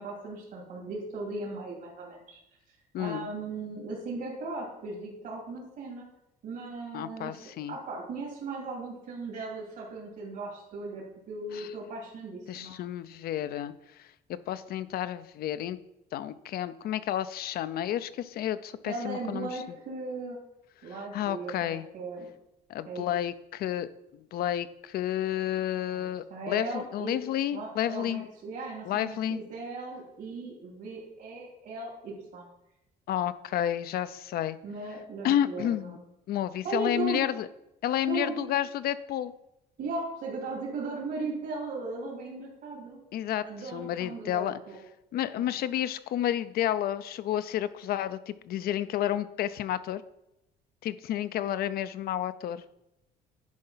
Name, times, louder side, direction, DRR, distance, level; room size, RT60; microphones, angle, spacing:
voice 1, 0.0-2.4 2.7-6.1 6.4-12.7 18.9-20.4 20.8-22.3 22.9-23.1 25.9-27.2 27.5-32.5 34.6-36.0 36.6-37.2 38.0-38.5 39.8-43.0 43.4-44.8 45.4-45.5, right 3 dB, 65° right, -3 dB, 2.6 m, -37 dB
voice 2, 2.9-3.3 6.9-7.8 11.5-11.7 12.5-13.7 14.3-15.8 16.1-19.6 21.1-21.8 22.7-23.9 24.3-28.2 28.9-29.4 33.1-34.6 35.2-36.0 36.3-37.5 37.8-39.3 43.1-43.4 43.7-44.6 45.1-50.0 50.8-52.6, left 11 dB, 65° left, 14 dB, 0.5 m, -31 dB
10.5 x 4.5 x 5.6 m, 0.87 s
cardioid pair, 110°, 17 cm